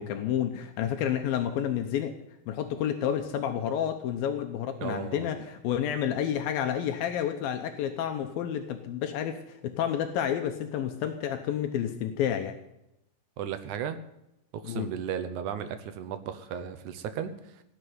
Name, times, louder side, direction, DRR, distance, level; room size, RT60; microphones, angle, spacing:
voice 1, 0.0-2.1 2.5-12.6 14.6-14.9, left 9 dB, 80° left, 6 dB, 2.7 m, -30 dB
voice 2, 4.8-5.3 13.4-14.0 14.5-17.6, right 8 dB, 65° right, 10 dB, 2.2 m, -35 dB
18.5 x 6.9 x 9.4 m, 0.85 s
omnidirectional pair, 4.2 m